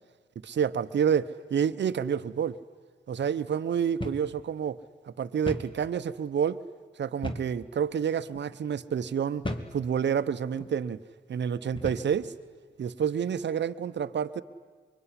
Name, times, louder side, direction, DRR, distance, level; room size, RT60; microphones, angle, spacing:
voice 1, 0.5-2.6 3.1-4.8 5.0-6.6 7.0-11.0 11.3-12.3 12.8-14.4, right 7 dB, 70° right, 12 dB, 0.9 m, -29 dB
sound 1, 4.0-4.3 4.6-4.7 5.5-5.8 7.2-7.6 8.3-8.5 9.4-9.8 10.5-10.7 11.8-12.1, left 1 dB, 25° left, 2.6 m, -35 dB
23.5 x 23.5 x 9.8 m, 1.5 s
cardioid pair, 50°, 19 cm